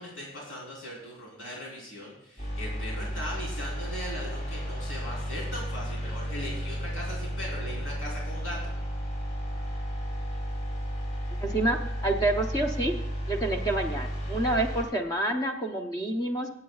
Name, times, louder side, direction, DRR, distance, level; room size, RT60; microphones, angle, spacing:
voice 1, 0.0-8.6, equal, 80° left, -4 dB, 3.9 m, -39 dB
sound 1, 2.4-14.8, equal, 40° left, 4.9 m, -33 dB
voice 2, 11.4-13.0 13.3-16.5, right 1 dB, 20° left, 3 dB, 0.8 m, -28 dB
22.0 x 8.5 x 2.4 m, 0.83 s
head